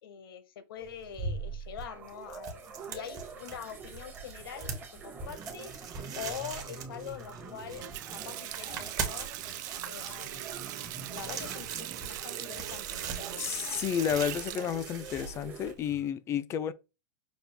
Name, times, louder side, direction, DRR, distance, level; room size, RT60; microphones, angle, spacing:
voice 1, 0.0-5.7 6.1-9.3 9.8-10.5 11.1-13.5, left 8 dB, 85° left, 1.0 m, -44 dB
sound 1, 0.8-15.7, right 4 dB, 15° right, 0.9 m, -47 dB
sound 2, 0.8-16.0, right 5 dB, 30° right, 1.0 m, -41 dB
Water tap faucet, 7.6-16.1, right 15 dB, 55° right, 0.4 m, -41 dB
voice 2, 13.4-16.7, left 9 dB, 25° left, 0.4 m, -31 dB
6.0 x 2.4 x 3.4 m
supercardioid pair, 150°, 12 cm